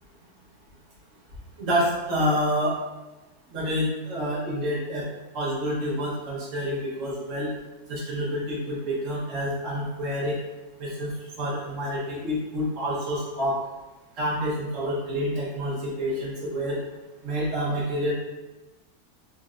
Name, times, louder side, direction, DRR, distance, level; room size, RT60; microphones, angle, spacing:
voice 1, 1.6-2.8 3.5-5.0 5.3-7.5 7.9-10.4 10.8-13.6 14.2-16.8 17.2-18.1, equal, 55° right, -6 dB, 1.6 m, -28 dB
4.3 x 3.5 x 2.6 m, 1.1 s
omnidirectional pair, 1.7 m